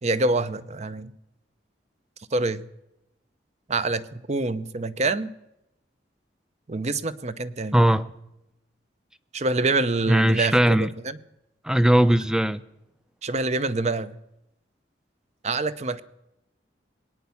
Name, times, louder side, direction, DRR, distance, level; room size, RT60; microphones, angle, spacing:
voice 1, 0.0-1.1 2.3-2.7 3.7-5.3 6.7-7.8 9.3-11.2 13.2-14.1 15.4-16.0, right 3 dB, 40° right, 0.7 m, -26 dB
voice 2, 7.7-8.1 10.1-10.9 11.6-12.6, right 1 dB, 5° right, 0.5 m, -19 dB
20.0 x 9.4 x 7.0 m
head